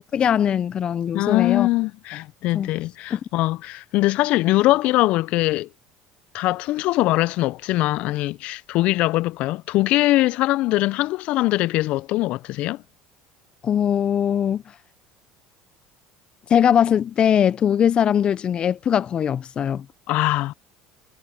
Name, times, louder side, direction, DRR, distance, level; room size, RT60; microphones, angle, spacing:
voice 1, 0.0-1.7 2.5-2.7 3.1-3.2 13.6-14.6 16.5-19.9, left 9 dB, 40° left, 1.1 m, -21 dB
voice 2, 1.1-5.7 6.3-12.8 20.1-20.5, left 18 dB, 60° left, 0.9 m, -22 dB
hypercardioid pair, 70°, 2 cm